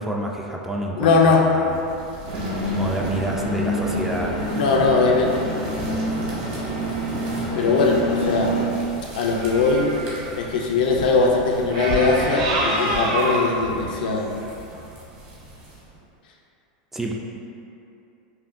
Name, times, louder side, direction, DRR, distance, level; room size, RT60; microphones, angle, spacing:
voice 1, 0.0-1.8 2.7-4.7 16.9-17.1, right 1 dB, 5° right, -1 dB, 0.3 m, -29 dB
voice 2, 1.0-1.4 4.5-5.4 7.6-8.6 9.1-9.9 10.4-14.3, left 4 dB, 80° left, 0 dB, 0.5 m, -20 dB
sound 1, 1.6-16.0, right 1 dB, 40° right, 1.1 m, -39 dB
sound 2, 2.2-8.7, equal, 80° right, 1.2 m, -26 dB
sound 3, 9.2-10.3 11.7-13.5 14.4-14.5, right 1 dB, 60° right, 0.7 m, -26 dB
5.5 x 2.2 x 2.5 m, 2.7 s
supercardioid pair, 135°, 5 cm